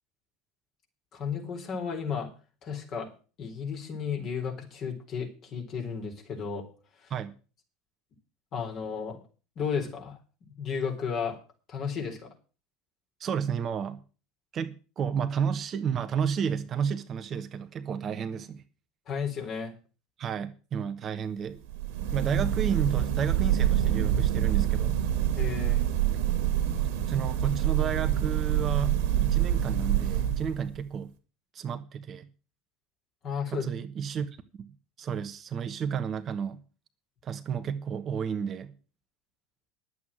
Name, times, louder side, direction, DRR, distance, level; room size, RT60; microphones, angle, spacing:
voice 1, 1.1-2.3 2.6-3.1 3.4-6.7 7.0-7.1 8.5-9.2 9.6-10.2 10.6-11.4 11.7-12.3 19.1-19.7 25.4-25.8 33.2-33.7, left 6 dB, 45° left, 4.1 m, -33 dB
voice 2, 13.2-14.0 14.5-18.6 20.2-21.6 22.1-25.0 26.8-31.1 31.5-32.3 33.5-36.6 37.2-38.7, right 7 dB, 35° right, 1.1 m, -32 dB
sound 1, 21.6-30.8, right 11 dB, 60° right, 2.0 m, -26 dB
11.0 x 8.3 x 7.5 m
figure-of-eight pair, 75°, 0 cm